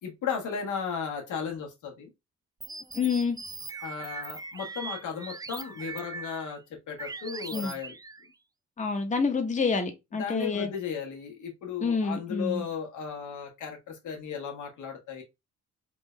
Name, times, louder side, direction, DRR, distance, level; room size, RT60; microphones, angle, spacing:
voice 1, 0.0-2.1 3.8-6.6 6.9-7.9 10.1-15.2, left 7 dB, 80° left, 1.4 m, -35 dB
sound 1, 2.6-6.6 7.0-8.3, right 4 dB, 15° right, 0.3 m, -41 dB
voice 2, 2.9-3.4 7.5-7.7 8.8-10.7 11.8-12.7, left 4 dB, 25° left, 0.9 m, -28 dB
3.8 x 2.4 x 3.2 m
cardioid pair, 90°, 30 cm